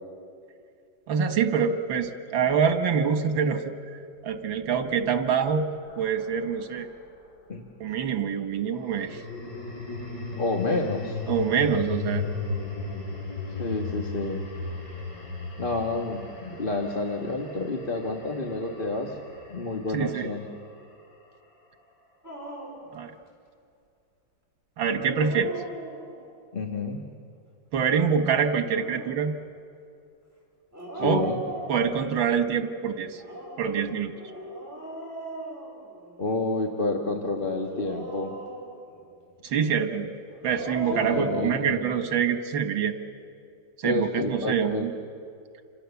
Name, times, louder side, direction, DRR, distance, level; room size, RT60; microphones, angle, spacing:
voice 1, 1.1-3.6 4.2-6.9 7.8-9.2 11.3-12.3 19.9-20.3 22.9-23.1 24.8-25.6 27.7-29.4 31.0-31.3 31.7-33.2 33.6-34.1 39.4-40.1 40.4-42.9 43.8-44.9, right 7 dB, 85° right, 7 dB, 2.2 m, -25 dB
sound 1, 4.6-7.1 8.7-21.0, left 4 dB, 60° left, 4.9 m, -36 dB
voice 2, 10.3-11.2 13.6-14.4 15.6-19.2 19.5-20.5 26.5-27.0 30.9-31.4 36.2-38.3 40.9-41.8 43.8-44.9, left 2 dB, 30° left, 1 dB, 1.5 m, -29 dB
Dog, 22.2-22.9 25.0-26.3 28.4-29.2 30.7-32.2 33.1-36.3 37.6-39.0 40.3-41.6, right 1 dB, 10° right, 5.6 m, -38 dB
28.5 x 26.5 x 7.1 m, 2.4 s
omnidirectional pair, 2.1 m